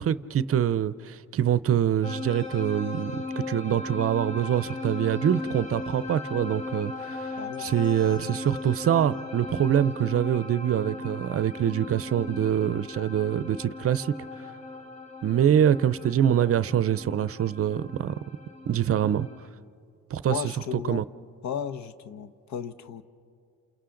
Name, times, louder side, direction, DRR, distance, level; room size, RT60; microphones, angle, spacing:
voice 1, 0.0-14.5 15.2-18.1 18.7-19.3 20.1-20.4 20.9-21.0, right 10 dB, 50° right, 0.6 m, -25 dB
sound 1, 2.0-19.5, left 3 dB, 25° left, 1.6 m, -37 dB
voice 2, 7.4-7.7 20.3-21.0 21.4-23.0, left 8 dB, 65° left, 0.9 m, -34 dB
29.0 x 28.5 x 3.9 m
cardioid pair, 90°, 30 cm